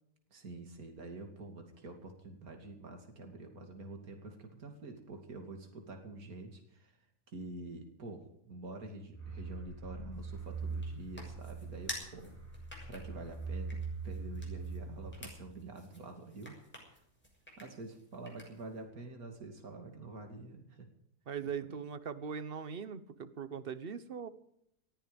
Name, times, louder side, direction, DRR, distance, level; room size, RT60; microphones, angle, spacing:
voice 1, 0.3-7.0 7.3-12.4 12.8-16.5 16.9-17.0 17.6-20.9, right 2 dB, 60° right, 4 dB, 3.1 m, -47 dB
sound 1, 9.1-15.7, right 4 dB, 15° right, 8.2 m, -42 dB
sound 2, 10.1-18.8, equal, 5° left, 6.6 m, -51 dB
voice 2, 21.3-24.3, right 7 dB, 40° right, 13 dB, 1.2 m, -40 dB
19.5 x 14.0 x 5.3 m, 0.72 s
omnidirectional pair, 1.7 m